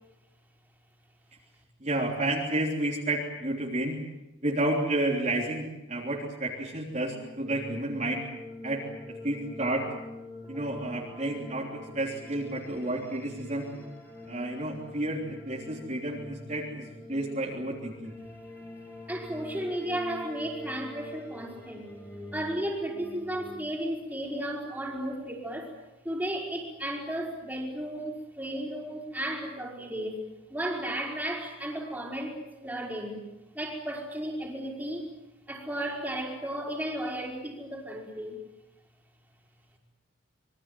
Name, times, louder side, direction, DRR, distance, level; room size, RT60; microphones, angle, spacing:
voice 1, 1.8-4.0 4.4-8.3 8.6-9.9 10.5-13.7 14.3-18.1, right 1 dB, 35° right, -3 dB, 3.5 m, -31 dB
sound 1, 6.7-23.6, left 2 dB, 10° left, 4.2 m, -45 dB
voice 2, 19.1-21.9 22.3-25.7 26.0-33.2 33.5-35.1 35.5-38.4, right 1 dB, 10° right, -1 dB, 5.1 m, -34 dB
27.0 x 23.0 x 7.7 m, 0.97 s
head